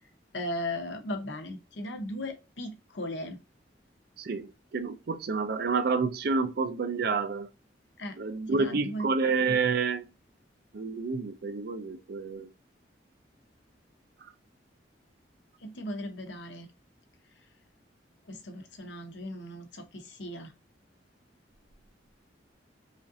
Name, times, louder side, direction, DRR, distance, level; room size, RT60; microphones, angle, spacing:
voice 1, 0.3-3.4 8.0-8.2 8.5-9.1 15.6-16.7 18.3-20.5, left 1 dB, 80° left, 0.8 m, -37 dB
voice 2, 4.7-7.5 8.2-10.0 10.7-12.5, right 4 dB, 60° right, 0.5 m, -29 dB
5.0 x 2.5 x 2.7 m
head